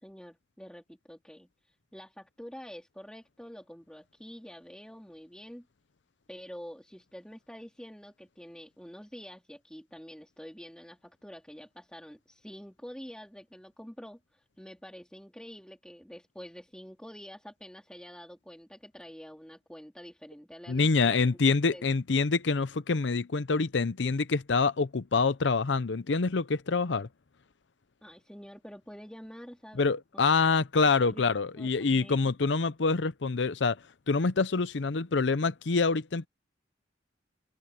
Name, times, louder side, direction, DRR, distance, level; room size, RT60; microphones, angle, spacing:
voice 1, 0.0-5.7 6.3-21.4 21.7-21.8 28.0-29.9 31.0-31.2 31.6-32.3, equal, 5° left, 3.6 m, -47 dB
voice 2, 20.7-27.1 29.8-33.8 34.1-36.3, left 4 dB, 80° left, 0.7 m, -26 dB
open air
head